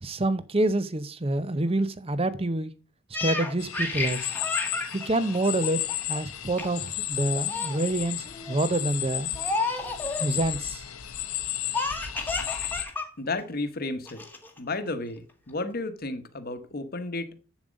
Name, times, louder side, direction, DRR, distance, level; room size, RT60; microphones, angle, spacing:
voice 1, 0.0-2.7 3.2-4.4 4.9-5.8 6.1-9.4 10.2-10.8, right 2 dB, 25° right, 0.6 m, -27 dB
Laughter, 3.1-6.2 6.6-6.9 7.2-7.8 8.3-8.6 9.4-10.3 11.7-13.1 13.4-13.5 14.1-14.6, left 3 dB, 10° left, 1.2 m, -31 dB
sound 1, 3.6-12.9, left 12 dB, 75° left, 1.0 m, -33 dB
voice 2, 13.2-14.2 14.6-17.3, left 2 dB, 45° left, 1.1 m, -32 dB
7.9 x 7.2 x 5.1 m
head